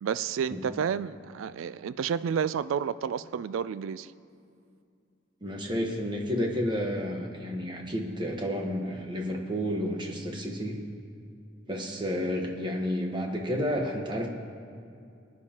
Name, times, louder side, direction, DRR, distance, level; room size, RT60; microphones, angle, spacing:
voice 1, 0.0-4.1, right 7 dB, 80° right, 15 dB, 0.3 m, -30 dB
voice 2, 5.4-10.8 11.7-14.3, equal, 25° right, 1 dB, 1.2 m, -31 dB
21.5 x 9.5 x 2.9 m, 2.4 s
head